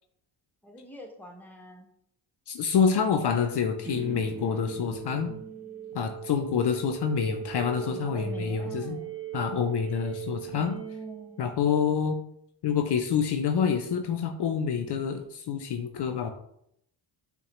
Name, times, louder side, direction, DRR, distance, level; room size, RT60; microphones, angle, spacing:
voice 1, 0.6-1.9 7.8-9.2 10.5-11.5, right 1 dB, 5° left, 2 dB, 0.8 m, -44 dB
voice 2, 2.5-5.3 5.9-9.0 9.3-10.7 11.4-12.2 12.6-16.3, left 7 dB, 55° left, 6 dB, 0.5 m, -27 dB
sound 1, 3.8-11.8, right 10 dB, 25° right, 0.9 m, -39 dB
5.4 x 2.2 x 3.0 m, 0.73 s
cardioid pair, 55°, 50 cm